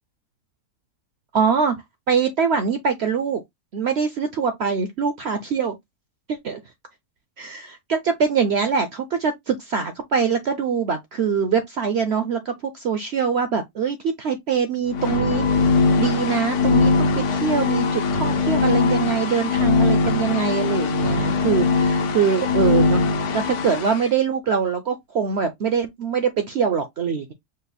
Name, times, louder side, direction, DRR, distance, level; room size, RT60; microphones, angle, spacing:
voice 1, 1.3-1.8 2.1-3.4 3.7-5.8 6.3-6.6 7.4-27.3, right 6 dB, 65° right, 0.6 m, -23 dB
sound 1, 14.9-24.0, left 4 dB, 60° left, 0.9 m, -21 dB
5.2 x 2.0 x 4.0 m
omnidirectional pair, 1.7 m